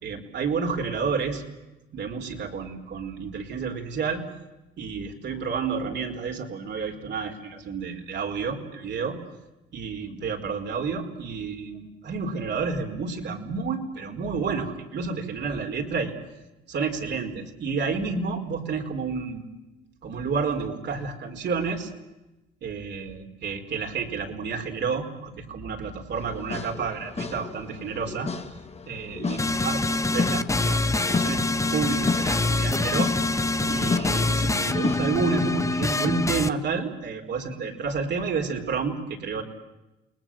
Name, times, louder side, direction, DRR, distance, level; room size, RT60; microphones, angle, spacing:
voice 1, 0.0-1.4 1.9-4.2 4.8-9.2 9.7-16.1 16.7-19.4 20.0-21.9 22.6-28.3 28.9-31.4 31.7-33.1 33.6-39.4, right 5 dB, 55° right, 3 dB, 4.7 m, -30 dB
sound 1, 26.2-35.0, left 4 dB, 30° left, 1.9 m, -33 dB
sound 2, 29.4-36.5, left 2 dB, 15° left, 1.1 m, -25 dB
29.0 x 20.0 x 7.7 m, 1.0 s
supercardioid pair, 75°, 21 cm